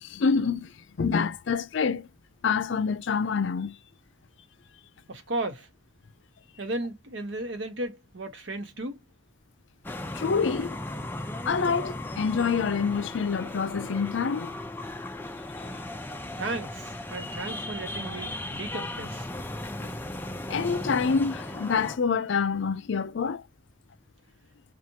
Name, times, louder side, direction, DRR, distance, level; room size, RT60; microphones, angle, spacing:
voice 1, 0.0-2.1 2.4-3.8 10.1-10.8 11.4-14.5 20.5-23.4, left 5 dB, 70° left, 0.5 m, -27 dB
voice 2, 5.1-5.7 6.6-9.0 16.4-19.3, right 2 dB, 70° right, 1.1 m, -34 dB
sound 1, 9.8-22.0, left 1 dB, 10° left, 0.5 m, -36 dB
4.5 x 2.4 x 2.8 m
head